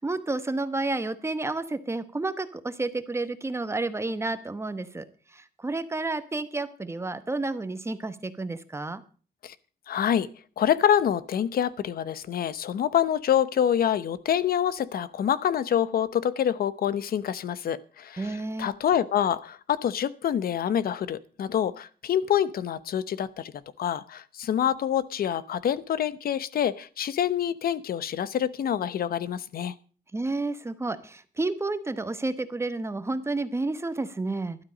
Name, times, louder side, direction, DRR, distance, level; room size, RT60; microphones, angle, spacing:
voice 1, 0.0-5.1 5.3-9.0 18.2-18.7 30.1-34.6, right 2 dB, 15° right, 11 dB, 1.0 m, -30 dB
voice 2, 9.9-10.3 10.6-23.5 23.8-29.7, left 9 dB, 70° left, 16 dB, 0.8 m, -26 dB
12.5 x 12.0 x 5.1 m, 0.39 s
wide cardioid pair, 135°, 16 cm